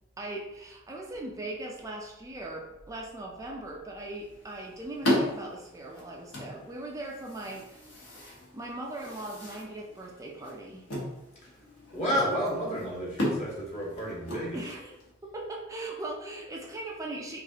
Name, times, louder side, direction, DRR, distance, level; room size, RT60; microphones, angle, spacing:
voice 1, 0.2-7.9 8.5-10.8 14.5-14.9 15.2-17.4, right 2 dB, 15° right, -1 dB, 0.4 m, -39 dB
sound 1, 4.0-15.1, left 1 dB, 85° left, 1.1 m, -36 dB
voice 2, 11.9-14.7, equal, 35° left, -5 dB, 1.2 m, -31 dB
4.7 x 2.4 x 2.8 m, 0.94 s
head